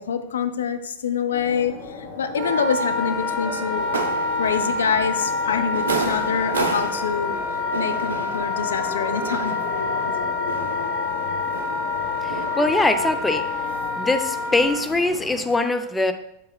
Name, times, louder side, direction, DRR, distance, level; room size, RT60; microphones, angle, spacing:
voice 1, 0.0-3.9 4.4-10.1, left 6 dB, 65° left, 8 dB, 0.5 m, -26 dB
sound 1, 1.3-15.4, left 3 dB, 50° left, 2.8 m, -35 dB
Wind instrument woodwind instrument, 2.3-14.8, left 4 dB, 25° right, 1.2 m, -27 dB
sound 2, 3.7-15.6, right 5 dB, 65° right, 0.7 m, -34 dB
voice 2, 12.2-13.5 14.0-16.1, left 2 dB, 10° left, 8 dB, 0.5 m, -22 dB
8.4 x 7.5 x 2.3 m, 0.75 s
figure-of-eight pair, 90°, 0 cm